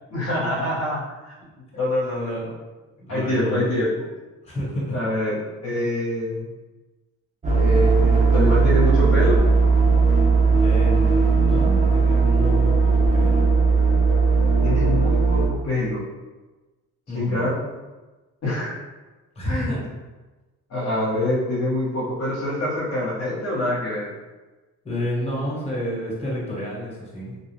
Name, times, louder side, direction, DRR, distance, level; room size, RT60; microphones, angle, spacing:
voice 1, 0.1-1.3 1.7-2.4 3.1-3.9 4.9-6.5 7.5-9.4 14.6-16.0 17.1-17.6 18.4-18.8 19.4-19.8 20.7-24.1, left 1 dB, 55° left, -6 dB, 1.0 m, -25 dB
voice 2, 2.0-2.5 3.0-3.7 4.4-4.9 10.6-13.4 17.1-17.5 19.3-19.9 24.8-27.4, equal, 20° left, -5 dB, 1.3 m, -30 dB
sound 1, 7.4-15.5, right 4 dB, 25° right, 0.7 m, -18 dB
2.6 x 2.3 x 3.3 m, 1.2 s
cardioid pair, 90°, 30 cm